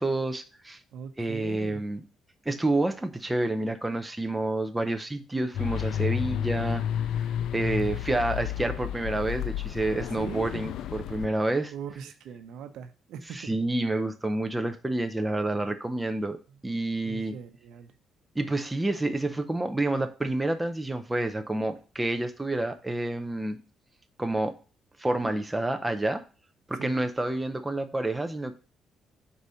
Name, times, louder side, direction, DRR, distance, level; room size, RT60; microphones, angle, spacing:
voice 1, 0.0-0.8 1.2-2.0 2.5-6.8 7.5-11.7 13.3-16.4 16.6-17.3 18.4-23.6 24.2-24.5 25.0-26.2 26.7-28.5, right 2 dB, 10° right, 7 dB, 0.5 m, -29 dB
voice 2, 0.9-1.8 10.2-10.5 11.7-13.5 17.0-17.9 26.8-27.0, right 7 dB, 80° right, 8 dB, 0.8 m, -40 dB
sound 1, 5.5-11.3, left 10 dB, 75° left, 0.3 m, -31 dB
4.8 x 4.0 x 5.5 m, 0.36 s
cardioid pair, 135°, 0 cm